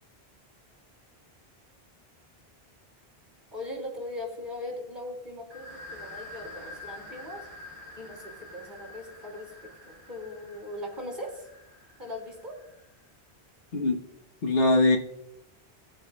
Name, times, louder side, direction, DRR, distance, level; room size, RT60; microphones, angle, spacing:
voice 1, 3.5-7.5 8.0-11.5 12.0-12.6, left 1 dB, 50° right, -2 dB, 3.5 m, -39 dB
sound 1, 5.5-13.0, left 2 dB, 20° right, 3.2 m, -47 dB
voice 2, 13.7-14.0 14.4-15.0, left 2 dB, 65° left, 2 dB, 1.3 m, -22 dB
18.5 x 7.7 x 2.3 m, 0.84 s
omnidirectional pair, 1.1 m